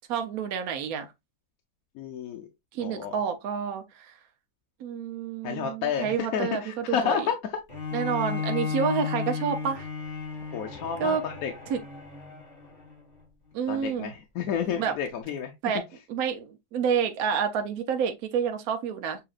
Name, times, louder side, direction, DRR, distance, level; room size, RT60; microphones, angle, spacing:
voice 1, 0.1-1.1 2.7-4.1 4.8-7.3 7.9-9.9 11.0-11.2 11.7-11.8 13.5-14.1 14.8-14.9 15.6-15.8 16.1-19.2, right 7 dB, 75° right, 1.2 m, -29 dB
voice 2, 2.0-2.5 2.8-3.2 5.4-7.3 10.5-11.5 13.7-15.5, left 7 dB, 70° left, 1.1 m, -30 dB
Bowed string instrument, 7.7-12.9, left 5 dB, 30° left, 2.0 m, -34 dB
6.9 x 2.9 x 2.4 m
omnidirectional pair, 1.6 m